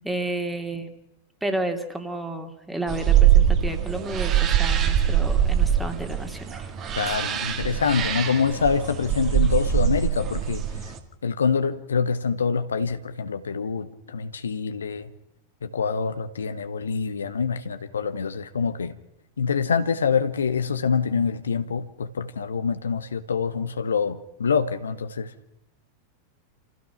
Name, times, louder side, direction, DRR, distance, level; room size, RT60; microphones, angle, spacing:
voice 1, 0.0-0.9 1.4-6.7 7.1-7.2, right 2 dB, 5° right, 5 dB, 2.6 m, -31 dB
sound 1, 2.9-11.0, right 10 dB, 30° right, 2.4 m, -22 dB
voice 2, 6.9-10.6 11.2-15.1 15.6-18.9 19.4-25.3, left 5 dB, 70° left, 10 dB, 1.1 m, -25 dB
28.5 x 15.5 x 5.9 m, 0.93 s
figure-of-eight pair, 90°, 0 cm